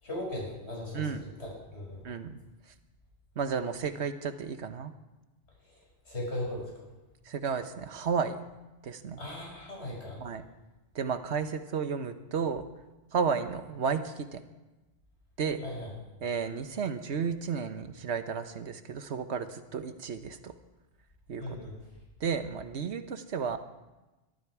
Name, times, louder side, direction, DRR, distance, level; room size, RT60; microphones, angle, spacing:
voice 1, 0.0-2.0 5.6-6.7 9.2-10.2 15.6-15.9 21.4-21.7, left 1 dB, 80° left, -3 dB, 6.3 m, -38 dB
voice 2, 2.0-2.4 3.4-4.9 7.3-8.4 8.8-9.2 10.2-10.4 10.9-12.6 13.1-14.4 15.4-15.6 16.2-20.5 21.3-21.6 22.2-23.6, right 6 dB, 90° right, 9 dB, 1.3 m, -32 dB
21.5 x 13.5 x 4.8 m, 1.1 s
omnidirectional pair, 1.1 m